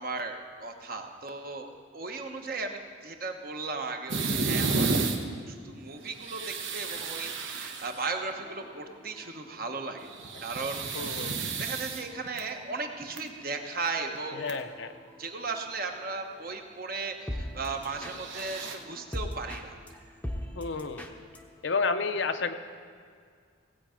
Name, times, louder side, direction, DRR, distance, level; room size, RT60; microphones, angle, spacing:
voice 1, 0.0-10.1 10.4-11.3 11.6-14.6 15.2-20.0, right 3 dB, 45° right, 4 dB, 1.0 m, -36 dB
sound 1, 4.1-5.2 6.0-8.0 10.0-12.4 13.0-13.2 14.1-14.2 14.5-14.6 17.8-18.7, right 4 dB, 70° right, 1.1 m, -32 dB
sound 2, 8.3-22.0, left 1 dB, 5° left, 0.7 m, -44 dB
voice 2, 10.9-11.4 14.3-14.9 20.5-21.0 21.6-22.5, left 4 dB, 65° left, 8 dB, 0.7 m, -31 dB
18.0 x 8.4 x 5.0 m, 2.1 s
head